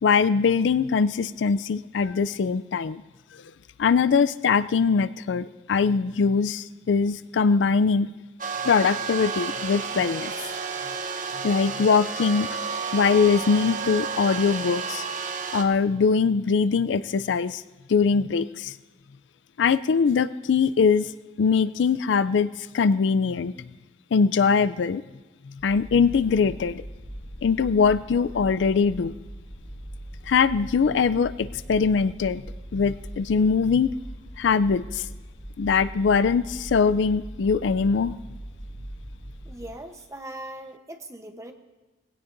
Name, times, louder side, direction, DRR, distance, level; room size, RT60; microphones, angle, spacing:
voice 1, 0.0-3.0 3.8-8.1 8.6-10.3 11.4-12.5 12.9-15.0 15.5-17.6 17.9-18.7 19.6-21.1 21.4-23.5 24.1-25.0 25.6-26.8 27.4-29.1 30.3-32.4 32.7-33.9 34.4-35.0 35.6-38.2, left 5 dB, 85° left, 16 dB, 0.4 m, -22 dB
sound 1, 8.4-15.6, right 5 dB, 45° right, 0.9 m, -31 dB
sound 2, 25.6-39.6, right 1 dB, 45° left, 5.1 m, -40 dB
voice 2, 39.4-41.5, right 1 dB, 15° right, 5 dB, 0.9 m, -40 dB
20.0 x 16.5 x 2.6 m, 1.2 s
head